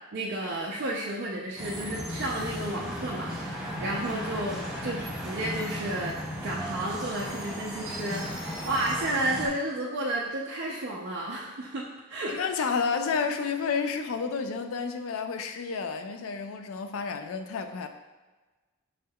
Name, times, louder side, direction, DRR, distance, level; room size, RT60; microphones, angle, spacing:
voice 1, 0.1-6.2 6.4-8.2 8.6-11.8 12.1-12.4, right 1 dB, 55° right, -4 dB, 0.4 m, -32 dB
sound 1, 1.6-9.5, equal, 5° right, 0.6 m, -35 dB
voice 2, 12.3-17.9, left 5 dB, 80° left, 6 dB, 0.4 m, -30 dB
5.3 x 3.5 x 2.2 m, 1.2 s
head